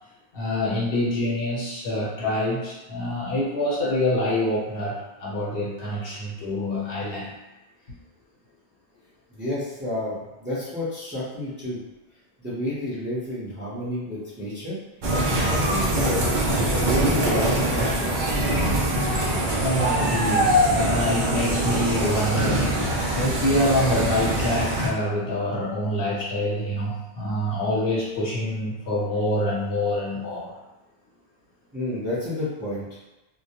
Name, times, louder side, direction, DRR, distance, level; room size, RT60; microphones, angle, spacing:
voice 1, 0.3-7.3 19.6-22.7 23.1-30.5, left 1 dB, 65° left, -6 dB, 0.9 m, -26 dB
voice 2, 9.3-11.8 12.4-15.1 15.4-18.1 31.7-32.9, left 1 dB, 10° right, -10 dB, 0.7 m, -30 dB
sound 1, 15.0-24.9, right 1 dB, 60° right, 0.6 m, -23 dB
2.2 x 2.1 x 2.8 m, 0.99 s
omnidirectional pair, 1.1 m